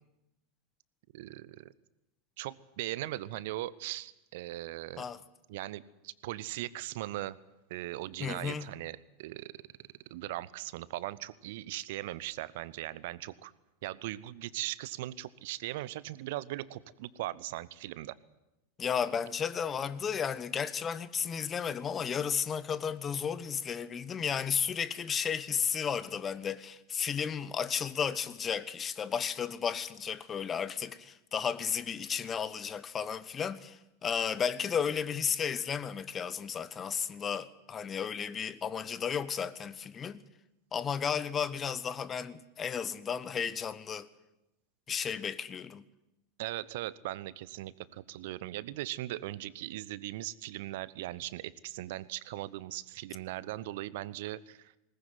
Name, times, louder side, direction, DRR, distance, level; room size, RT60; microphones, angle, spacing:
voice 1, 1.1-1.7 2.4-5.0 5.5-7.4 7.7-9.5 10.1-13.5 13.8-18.2 46.4-54.7, right 16 dB, 60° right, 0.9 m, -39 dB
voice 2, 8.2-8.7 18.8-40.2 40.7-44.1 44.9-45.8, left 7 dB, 25° left, 1.2 m, -33 dB
20.5 x 19.5 x 9.5 m
figure-of-eight pair, 85°, 0 cm